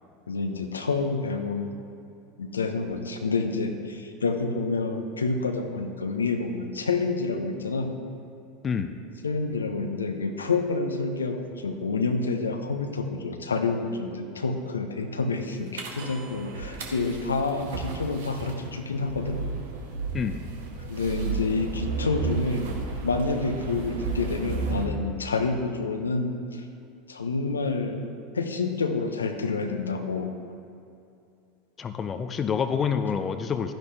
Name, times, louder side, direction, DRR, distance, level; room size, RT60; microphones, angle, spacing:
voice 1, 0.3-1.8 2.4-7.9 9.2-19.4 20.9-22.7 23.0-26.7 27.1-28.1 28.3-30.3, left 3 dB, 80° left, 5 dB, 0.8 m, -28 dB
voice 2, 8.6-9.0 20.1-20.4 31.8-33.7, left 6 dB, 30° left, 8 dB, 0.6 m, -27 dB
sound 1, 15.8-24.9, right 4 dB, 70° right, 1.4 m, -33 dB
12.0 x 10.5 x 3.3 m, 2.6 s
figure-of-eight pair, 80°, 0 cm